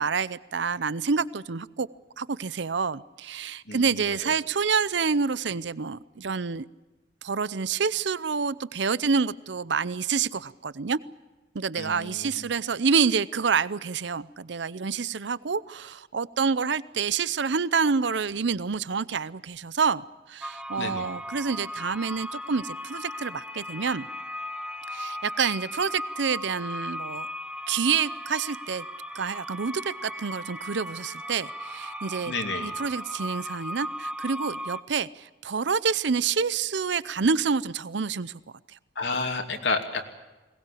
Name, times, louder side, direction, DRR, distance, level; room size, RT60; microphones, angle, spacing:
voice 1, 0.0-1.9 2.2-6.7 7.2-11.0 11.5-24.1 24.9-27.3 27.7-28.8 29.1-32.3 32.6-38.4 38.7-38.8, right 5 dB, 75° right, 19 dB, 0.7 m, -28 dB
voice 2, 11.7-12.4 20.8-21.1 32.3-32.7 39.0-40.0, left 3 dB, 70° left, 4 dB, 2.7 m, -30 dB
sound 1, 20.4-34.8, equal, 5° right, 1.0 m, -37 dB
21.5 x 19.5 x 8.5 m, 1.1 s
head